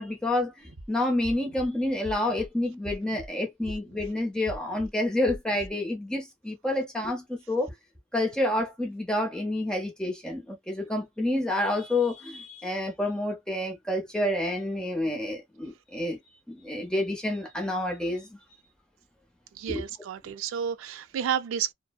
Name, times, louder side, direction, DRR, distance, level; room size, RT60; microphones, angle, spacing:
voice 1, 0.0-7.7 8.1-16.2 16.5-18.4 19.7-19.8, left 1 dB, 5° left, 0.6 m, -29 dB
sound 1, 0.6-0.9 1.2-1.7 2.0-2.5 2.8-3.3 3.7-4.1 4.5-4.9 5.3-5.7, right 1 dB, 55° right, 0.7 m, -41 dB
voice 2, 19.6-21.7, right 8 dB, 70° right, 0.3 m, -31 dB
2.6 x 2.0 x 2.3 m
head